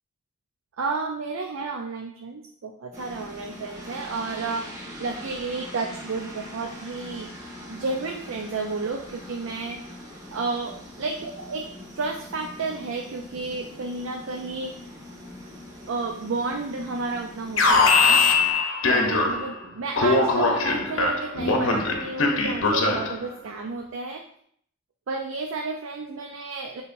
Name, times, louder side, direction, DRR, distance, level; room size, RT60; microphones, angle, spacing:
voice 1, 0.8-7.3 7.7-10.0 10.3-11.7 12.0-14.7 15.9-18.2 18.8-24.2 25.1-26.8, right 3 dB, 85° right, 2 dB, 0.5 m, -32 dB
sound 1, 2.9-18.5, left 1 dB, 35° right, 1.2 m, -42 dB
Alarm, 17.6-19.6 20.0-23.2, left 3 dB, 75° left, 0.7 m, -21 dB
6.6 x 2.8 x 2.6 m, 0.64 s
head